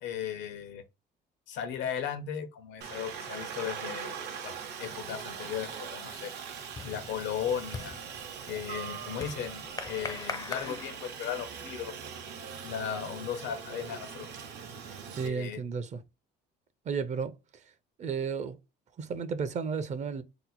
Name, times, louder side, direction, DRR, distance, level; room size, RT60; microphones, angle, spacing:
voice 1, 0.0-0.8 1.5-4.1 4.4-6.3 6.8-8.0 8.5-11.9 12.6-14.3 15.2-15.6, left 8 dB, 90° left, 0.7 m, -36 dB
Aircraft, 2.8-15.3, right 7 dB, 70° right, 0.7 m, -41 dB
sound 1, 5.3-5.5 5.8-11.6, left 4 dB, 20° left, 0.4 m, -42 dB
voice 2, 15.1-16.0 16.9-17.3 18.0-18.6 19.0-20.2, right 6 dB, 40° right, 0.5 m, -33 dB
2.8 x 2.1 x 3.9 m
cardioid pair, 110°, 18 cm